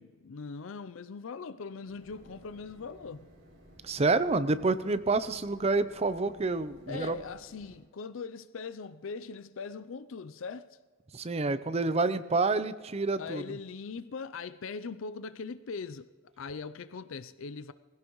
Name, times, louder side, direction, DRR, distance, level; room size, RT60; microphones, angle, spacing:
voice 1, 0.0-3.3 6.9-10.8 13.2-16.1 16.4-17.7, left 5 dB, 65° left, 0.5 m, -40 dB
sound 1, 1.8-7.8, equal, 65° right, 5.6 m, -56 dB
voice 2, 3.8-7.2 11.1-13.4, right 3 dB, 30° right, 0.6 m, -28 dB
20.0 x 16.5 x 3.1 m
head